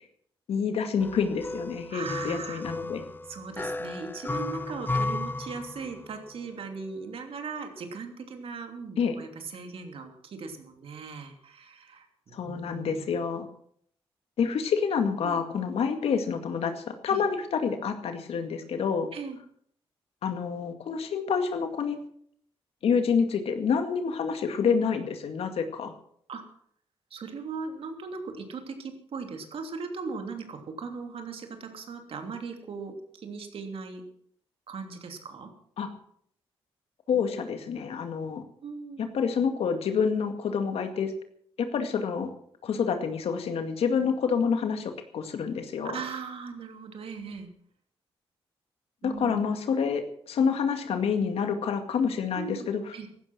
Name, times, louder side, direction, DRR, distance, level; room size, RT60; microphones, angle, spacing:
voice 1, 0.5-3.0 9.0-9.2 12.3-13.5 14.4-19.1 20.2-22.0 22.8-25.9 35.8-35.9 37.1-38.4 39.0-41.1 41.6-42.3 42.6-46.0 49.0-52.9, left 6 dB, 75° left, 7 dB, 2.1 m, -28 dB
sound 1, 1.0-6.2, left 2 dB, 20° left, 0.8 m, -34 dB
voice 2, 1.9-2.6 3.3-13.2 15.2-15.4 17.1-17.2 19.1-19.4 26.3-26.4 27.1-34.0 34.7-35.5 38.6-39.1 45.8-47.5 49.0-49.4 52.3-53.1, right 5 dB, 65° right, 5 dB, 2.9 m, -39 dB
15.0 x 12.5 x 6.1 m, 0.65 s
cardioid pair, 80°, 10 cm